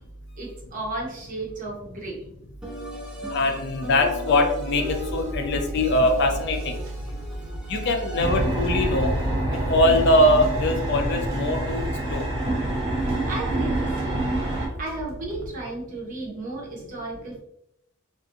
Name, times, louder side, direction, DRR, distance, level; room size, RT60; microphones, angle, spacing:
voice 1, 0.4-2.2 13.3-14.2 14.8-17.4, right 2 dB, 40° right, -3 dB, 0.8 m, -34 dB
sound 1, 2.6-8.7, left 1 dB, 5° right, 0.5 m, -37 dB
voice 2, 3.3-6.7 7.7-9.1 9.7-11.8 12.1-12.3, left 1 dB, 55° left, 4 dB, 0.4 m, -22 dB
sound 2, 4.9-15.5, left 1 dB, 80° right, 0.6 m, -40 dB
sound 3, 8.2-14.7, right 1 dB, 25° right, 1.2 m, -26 dB
2.6 x 2.4 x 2.5 m, 0.78 s
head